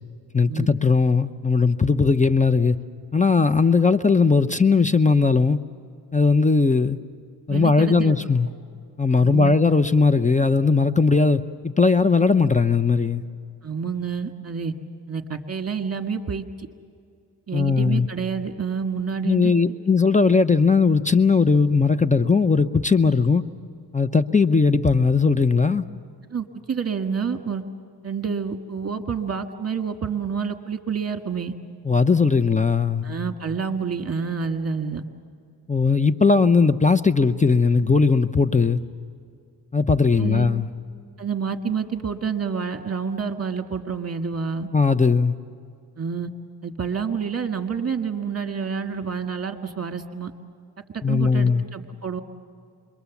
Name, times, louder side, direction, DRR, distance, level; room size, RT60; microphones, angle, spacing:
voice 1, 0.3-2.8 3.1-5.6 6.1-7.0 7.5-8.5 9.0-13.2 17.5-18.1 19.2-23.4 23.9-25.8 31.8-33.1 35.7-38.8 39.7-40.7 44.7-45.3 51.0-51.6, left 4 dB, 20° left, 0.7 m, -18 dB
voice 2, 7.5-8.2 9.2-9.5 13.6-14.7 15.1-16.7 17.5-19.5 26.3-27.6 28.0-31.5 33.0-35.0 40.2-40.5 41.2-44.7 46.0-46.3 46.6-50.3 51.1-52.2, right 6 dB, 35° right, 1.6 m, -28 dB
28.0 x 22.5 x 7.1 m
cardioid pair, 65°, 41 cm